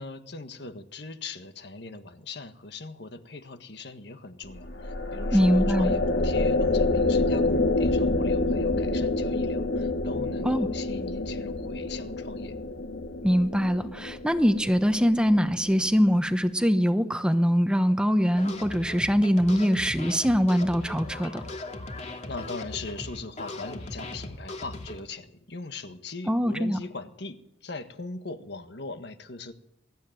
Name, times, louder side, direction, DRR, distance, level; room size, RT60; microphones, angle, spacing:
voice 1, 0.0-12.6 22.3-29.5, left 3 dB, 65° left, 8 dB, 1.7 m, -40 dB
sound 1, 4.5-15.9, left 2 dB, 80° left, 1.9 m, -27 dB
voice 2, 5.3-6.0 10.4-10.7 13.2-21.4 26.3-26.8, equal, 5° right, 9 dB, 1.0 m, -23 dB
sound 2, 18.4-25.0, left 2 dB, 40° left, 2.4 m, -39 dB
23.5 x 13.5 x 9.1 m, 0.81 s
head